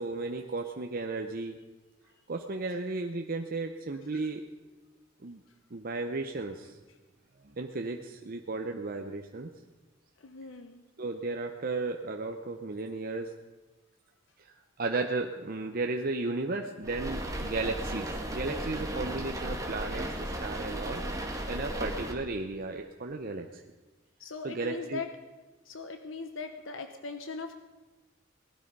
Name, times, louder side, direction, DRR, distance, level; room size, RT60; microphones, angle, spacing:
voice 1, 0.0-1.6 2.3-4.4 5.2-5.4 5.7-6.8 7.6-9.5 11.0-13.3 14.4-21.0 21.5-23.6 24.4-25.0, right 3 dB, 50° right, 4 dB, 0.8 m, -34 dB
voice 2, 10.2-10.8 24.2-25.1 25.6-27.5, left 4 dB, 90° left, 7 dB, 1.0 m, -40 dB
sound 1, 16.8-22.1, right 1 dB, 20° right, 1.8 m, -35 dB
18.5 x 12.0 x 5.4 m, 1.2 s
head